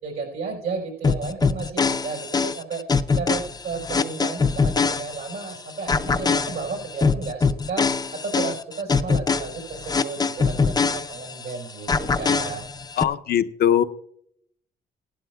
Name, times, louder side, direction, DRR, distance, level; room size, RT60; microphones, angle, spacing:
voice 1, 0.0-2.8 3.2-12.6, right 4 dB, 75° right, -1 dB, 4.5 m, -33 dB
sound 1, 1.0-5.5 5.9-11.5 11.9-13.0, left 4 dB, 20° left, 0.5 m, -23 dB
voice 2, 13.0-13.8, left 10 dB, 65° left, 9 dB, 0.6 m, -20 dB
17.5 x 11.5 x 2.3 m, 0.70 s
cardioid pair, 90°, 18 cm